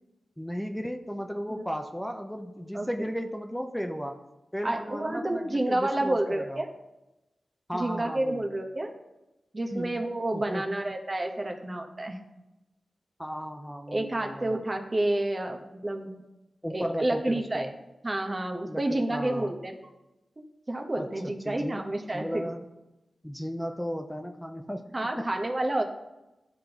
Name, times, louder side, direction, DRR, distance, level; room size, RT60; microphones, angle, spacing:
voice 1, 0.4-4.2 4.5-6.6 7.7-8.4 9.7-10.0 10.3-10.8 13.2-14.6 16.6-17.7 18.7-19.5 21.0-21.1 21.4-21.8 22.1-22.6 23.2-24.9 25.2-25.3, equal, 5° left, 5 dB, 0.6 m, -35 dB
voice 2, 4.6-6.7 7.7-8.9 9.5-12.2 13.9-16.2 16.7-17.7 18.0-19.7 20.7-22.4 24.9-25.8, right 1 dB, 40° right, 3 dB, 1.0 m, -29 dB
11.0 x 3.7 x 2.9 m, 0.99 s
cardioid pair, 40°, 0 cm